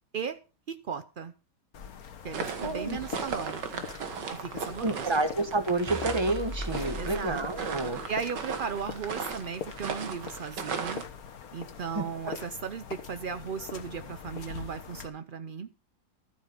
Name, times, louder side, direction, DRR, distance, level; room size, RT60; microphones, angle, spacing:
voice 1, 0.7-1.3 2.2-3.8 4.3-5.1 7.0-7.4 8.1-11.0 11.5-15.7, right 6 dB, 70° right, 11 dB, 0.5 m, -36 dB
sound 1, 1.7-15.1, left 7 dB, 60° left, 1.6 m, -43 dB
sound 2, 2.3-11.0, right 6 dB, 85° right, 2.1 m, -37 dB
voice 2, 2.6-3.0 4.8-8.0 11.9-12.4, right 2 dB, 20° right, 10 dB, 1.0 m, -29 dB
sound 3, 5.9-10.4, left 2 dB, 25° left, 0.7 m, -42 dB
12.5 x 8.5 x 5.4 m, 0.34 s
omnidirectional pair, 1.8 m